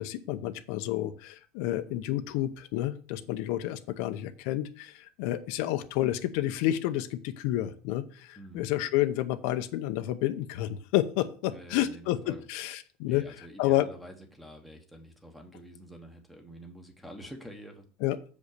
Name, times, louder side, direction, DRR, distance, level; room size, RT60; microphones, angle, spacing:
voice 1, 0.0-13.9 18.0-18.2, left 14 dB, 65° left, 9 dB, 0.7 m, -30 dB
voice 2, 8.4-8.7 11.5-12.4 13.0-17.8, equal, ahead, 5 dB, 1.2 m, -47 dB
7.0 x 5.2 x 6.6 m, 0.42 s
cardioid pair, 160°, 3 cm